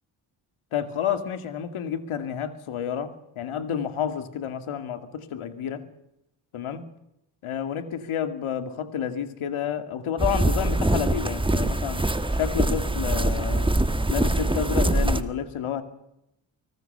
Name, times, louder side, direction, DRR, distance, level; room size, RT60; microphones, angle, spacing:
voice 1, 0.7-5.9 6.5-6.8 7.4-12.0 12.3-13.7 14.1-15.8, left 8 dB, 75° left, 10 dB, 2.5 m, -30 dB
sound 1, 10.2-15.2, right 2 dB, 10° right, 1.6 m, -23 dB
25.0 x 19.5 x 6.8 m, 0.84 s
cardioid pair, 65°, 49 cm